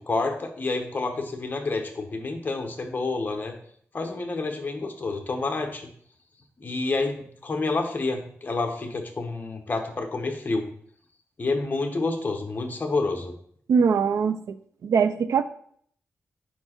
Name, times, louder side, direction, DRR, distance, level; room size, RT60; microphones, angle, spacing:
voice 1, 0.1-3.5 3.9-5.9 6.6-10.7 11.4-13.3, left 3 dB, 35° left, 4 dB, 1.0 m, -28 dB
voice 2, 13.7-14.6 14.8-15.4, right 6 dB, 75° right, 12 dB, 0.4 m, -22 dB
4.8 x 4.5 x 4.4 m, 0.63 s
wide cardioid pair, 110°, 5 cm